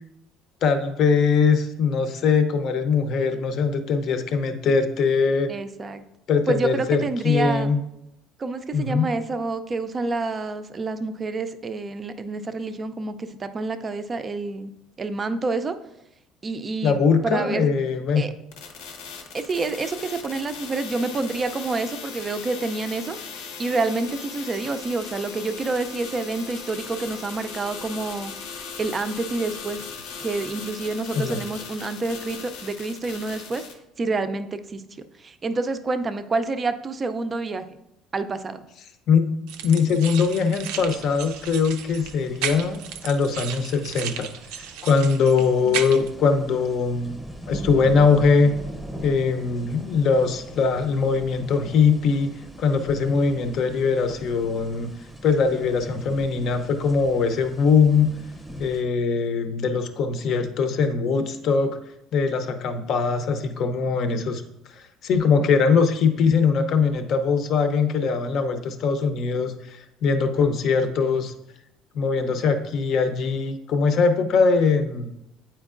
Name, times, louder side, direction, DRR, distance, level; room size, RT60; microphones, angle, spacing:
voice 1, 0.6-5.5 6.3-7.0 7.2-7.8 8.7-9.1 16.8-18.3 31.1-31.4 39.1-39.4 39.6-44.3 44.6-47.1 47.5-48.5 49.0-52.3 52.6-54.9 55.2-58.1 58.6-61.8 62.1-64.4 65.0-71.3 71.9-75.1, left 5 dB, 50° left, 8 dB, 0.6 m, -21 dB
voice 2, 5.5-6.0 6.5-7.7 8.4-14.7 15.0-15.8 16.4-17.7 18.2-18.3 19.3-28.3 28.8-29.9 30.2-33.6 34.0-34.8 35.2-37.8 38.1-38.6 45.4-45.9, right 3 dB, 25° right, 10 dB, 0.4 m, -28 dB
sound 1, 18.5-33.7, left 5 dB, 90° left, 0.9 m, -38 dB
sound 2, 39.5-46.1, right 9 dB, 90° right, 0.4 m, -34 dB
sound 3, 40.2-58.8, right 1 dB, ahead, 0.8 m, -41 dB
8.7 x 4.4 x 2.5 m, 0.85 s
cardioid pair, 140°, 0 cm